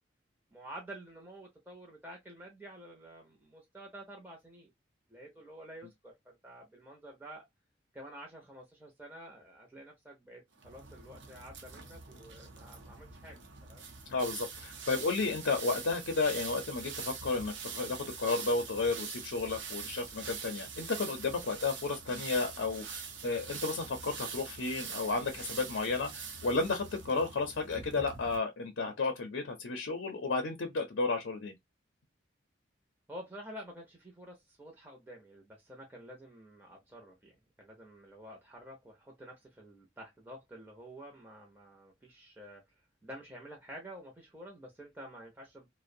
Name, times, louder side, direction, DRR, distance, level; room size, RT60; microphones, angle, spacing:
voice 1, 0.5-4.7 5.1-7.4 7.9-13.8 33.1-42.6 43.0-45.7, right 1 dB, 10° right, 0.5 m, -50 dB
sound 1, 10.6-28.4, right 5 dB, 80° right, 0.6 m, -44 dB
voice 2, 14.1-26.1 26.4-31.5, left 3 dB, 80° left, 0.5 m, -32 dB
2.5 x 2.0 x 2.5 m
head